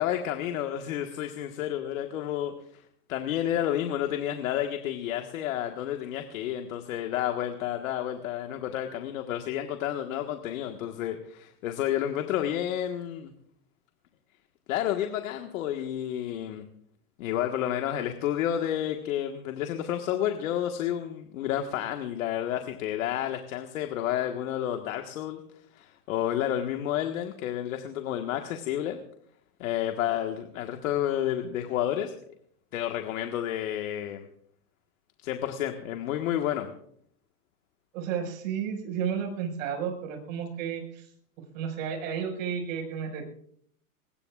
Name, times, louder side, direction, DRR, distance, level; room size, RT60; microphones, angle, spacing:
voice 1, 0.0-2.8 3.1-13.3 14.7-16.6 17.2-25.4 25.7-29.0 29.6-32.1 32.7-34.3 35.2-36.7, left 11 dB, 60° left, 4 dB, 1.7 m, -30 dB
voice 2, 37.9-41.1 41.5-43.3, right 7 dB, 60° right, 2 dB, 5.7 m, -32 dB
23.5 x 20.0 x 2.5 m, 0.66 s
supercardioid pair, 150°, 45 cm